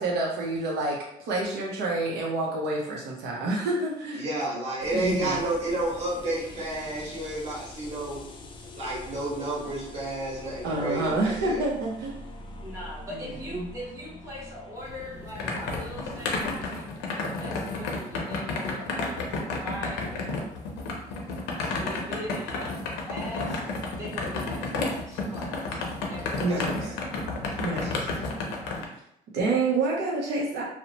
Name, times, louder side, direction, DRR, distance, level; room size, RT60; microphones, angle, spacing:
voice 1, 0.0-4.2 4.9-5.4 10.6-12.2 13.6-13.7 26.4-26.8 27.6-28.1 29.3-30.6, right 2 dB, 80° right, -3 dB, 0.6 m, -28 dB
voice 2, 4.1-8.3 8.6-11.6 26.5-27.0 27.7-28.3, right 1 dB, 40° right, -7 dB, 1.5 m, -31 dB
sound 1, 4.8-16.7, left 2 dB, 30° left, 0.4 m, -44 dB
voice 3, 5.2-5.5 6.4-6.5 12.6-20.5 21.6-23.6 23.9-25.8 26.1-26.6, equal, 20° right, -6 dB, 0.9 m, -41 dB
sound 2, 14.8-28.8, left 3 dB, 90° left, 0.6 m, -32 dB
2.7 x 2.0 x 2.8 m, 0.76 s
cardioid pair, 110°, 17 cm